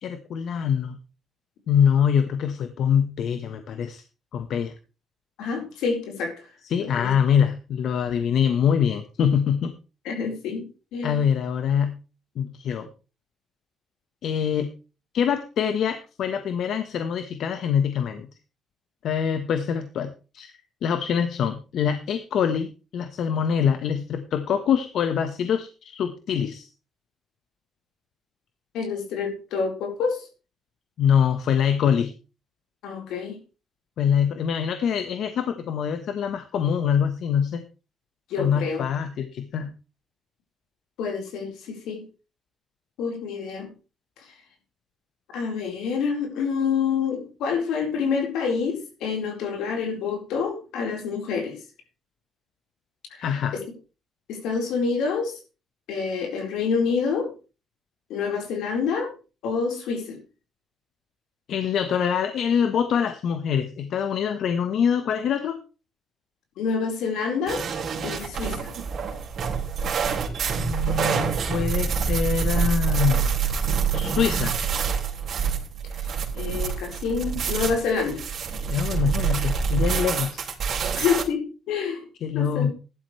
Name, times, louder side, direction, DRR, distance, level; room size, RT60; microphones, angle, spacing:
voice 1, 0.0-1.0 1.7-4.0 4.3-4.7 6.7-9.7 11.0-12.0 12.4-12.9 14.2-14.7 15.1-18.3 19.0-20.5 20.8-26.7 31.0-32.1 34.0-37.6 38.4-39.7 53.2-53.6 61.5-65.6 70.6-73.3 73.9-74.5 78.7-81.0 82.2-82.7, left 8 dB, 70° left, 9 dB, 1.3 m, -24 dB
voice 2, 5.4-6.5 6.8-7.1 10.0-10.6 10.9-11.2 28.7-30.3 32.8-33.4 38.3-38.8 41.0-42.0 43.0-43.7 44.2-44.3 45.3-51.6 53.1-53.3 53.5-53.6 54.3-55.4 55.9-57.3 58.1-59.1 59.4-60.2 66.6-67.6 68.0-68.7 76.3-78.2 81.0-82.0 82.3-82.7, left 5 dB, 90° left, 3 dB, 4.4 m, -27 dB
sound 1, 67.5-81.2, right 6 dB, 60° right, 3.7 m, -26 dB
15.0 x 11.5 x 3.3 m, 0.32 s
cardioid pair, 90°, 0 cm